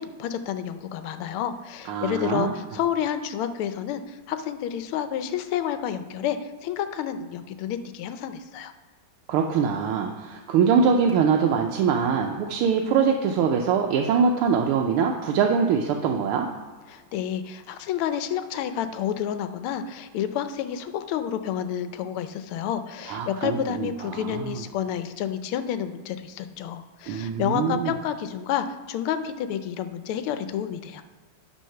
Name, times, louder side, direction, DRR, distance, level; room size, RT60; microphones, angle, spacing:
voice 1, 0.0-8.7 16.9-31.0, left 9 dB, 85° left, 10 dB, 1.5 m, -30 dB
voice 2, 1.9-2.5 9.3-16.5 23.1-24.6 27.1-27.9, right 6 dB, 90° right, 2 dB, 1.6 m, -23 dB
9.2 x 3.9 x 5.6 m, 1.5 s
omnidirectional pair, 2.4 m